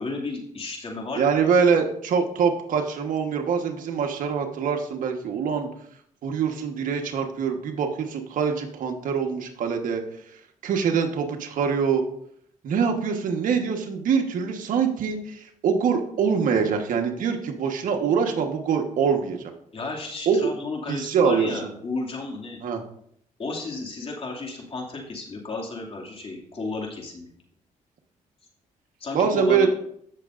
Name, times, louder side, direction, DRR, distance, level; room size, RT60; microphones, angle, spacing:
voice 1, 0.0-1.5 19.7-22.6 23.4-27.3 29.0-29.7, left 3 dB, 40° left, -1 dB, 2.4 m, -33 dB
voice 2, 1.1-5.7 6.2-10.0 10.6-12.0 12.6-19.4 20.3-20.5 20.9-21.6 22.6-22.8 29.1-29.7, right 6 dB, 70° right, 3 dB, 1.4 m, -24 dB
15.5 x 6.5 x 2.6 m, 0.69 s
cardioid pair, 85°, 14 cm